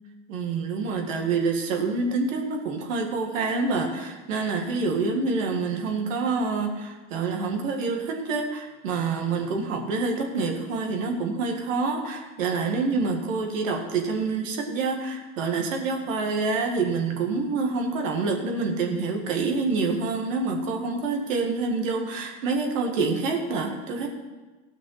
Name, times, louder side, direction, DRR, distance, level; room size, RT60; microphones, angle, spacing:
voice 1, 0.3-24.1, right 4 dB, 85° right, 2 dB, 1.9 m, -27 dB
15.5 x 6.1 x 5.7 m, 1.2 s
hypercardioid pair, 90°, 38 cm